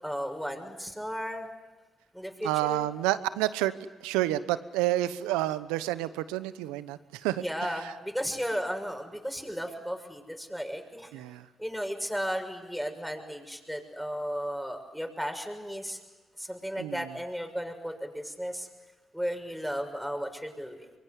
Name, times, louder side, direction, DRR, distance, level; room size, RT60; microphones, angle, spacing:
voice 1, 0.0-1.5 2.1-2.9 7.3-11.1 11.6-16.0 16.4-18.7 19.1-20.9, equal, ahead, 4 dB, 6.5 m, -34 dB
voice 2, 2.4-3.7 4.0-7.4 11.1-11.4 16.8-17.0, right 15 dB, 90° right, 14 dB, 0.9 m, -29 dB
25.0 x 23.0 x 9.8 m, 1.2 s
hypercardioid pair, 45°, 0 cm